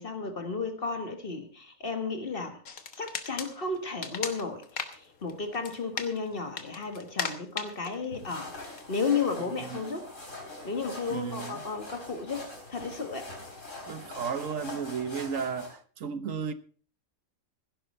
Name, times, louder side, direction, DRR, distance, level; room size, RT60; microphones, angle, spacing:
voice 1, 0.0-2.6 2.9-10.1 10.6-13.3, left 4 dB, 40° left, 1.7 m, -33 dB
sound 1, 2.7-9.3, left 6 dB, 85° left, 1.8 m, -39 dB
sound 2, 8.1-15.7, left 2 dB, 60° left, 4.5 m, -43 dB
voice 2, 11.1-11.6 13.9-16.5, right 6 dB, 70° right, 1.3 m, -34 dB
16.0 x 11.0 x 4.3 m
omnidirectional pair, 1.4 m